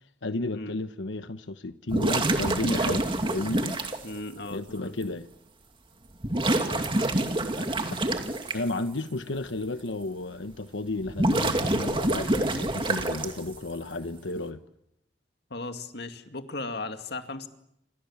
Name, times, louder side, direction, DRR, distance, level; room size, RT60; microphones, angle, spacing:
voice 1, 0.2-3.8 4.5-5.3 7.6-7.7 8.5-14.6, left 2 dB, 90° left, 10 dB, 1.1 m, -33 dB
sound 1, 1.9-4.0 5.0-5.1 6.2-8.5 11.0-13.6, right 1 dB, 30° right, 2.5 m, -26 dB
voice 2, 4.0-5.0 6.6-6.9 15.5-17.5, left 2 dB, 60° left, 7 dB, 2.3 m, -37 dB
29.5 x 26.5 x 7.3 m, 0.77 s
head